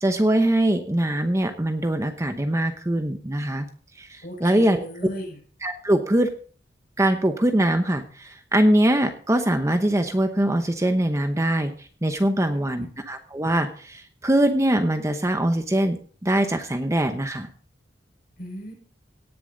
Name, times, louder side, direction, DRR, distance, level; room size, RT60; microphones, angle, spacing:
voice 1, 0.0-3.7 4.0-4.9 5.6-6.3 7.0-11.7 12.0-16.0 16.2-17.5, right 1 dB, 15° right, 7 dB, 0.9 m, -22 dB
voice 2, 4.2-5.4 12.4-12.9 18.4-18.7, equal, 55° left, 0 dB, 5.8 m, -37 dB
18.0 x 6.9 x 3.9 m, 0.42 s
head